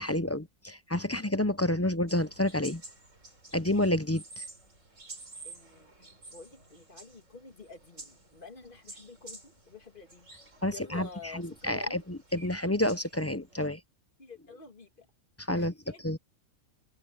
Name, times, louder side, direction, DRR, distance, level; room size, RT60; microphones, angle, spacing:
voice 1, 0.0-2.8 3.5-4.5 10.6-13.8 15.4-15.7 16.0-16.2, left 1 dB, 20° left, 0.4 m, -29 dB
sound 1, 2.1-13.7, right 2 dB, 65° right, 5.0 m, -51 dB
voice 2, 5.4-10.3 10.7-12.0 14.2-15.1 15.5-16.0, left 4 dB, 40° left, 2.4 m, -49 dB
open air
omnidirectional pair, 1.4 m